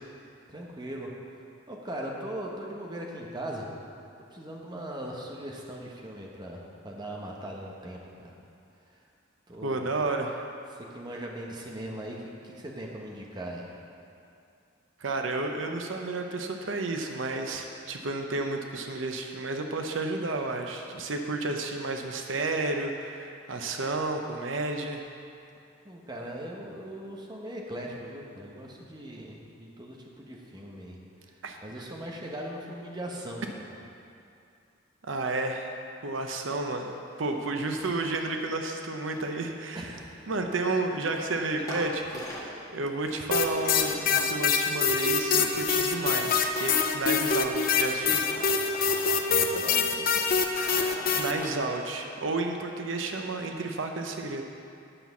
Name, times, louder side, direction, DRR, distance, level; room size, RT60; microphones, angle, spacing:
voice 1, 0.5-1.1 1.7-3.7 4.3-8.3 9.5-10.1 10.7-13.7 25.8-31.0 31.3-33.7 39.7-40.3 49.3-50.2, right 1 dB, 20° right, -1 dB, 1.2 m, -39 dB
voice 2, 9.6-10.5 15.0-25.0 31.4-31.9 35.1-35.7 36.0-39.9 40.3-48.2 51.1-54.4, right 2 dB, 85° right, 4 dB, 0.7 m, -31 dB
sound 1, 37.2-37.3 37.6-37.9 39.0-40.3 41.1-41.3 41.6-42.6 43.0-44.3 45.2-46.0 46.6-46.9 47.2-49.4 49.6-49.7 50.3-52.0, equal, 20° left, 1.9 m, -42 dB
sound 2, 43.3-51.3, left 5 dB, 50° left, 0.6 m, -25 dB
9.7 x 5.9 x 7.1 m, 2.6 s
head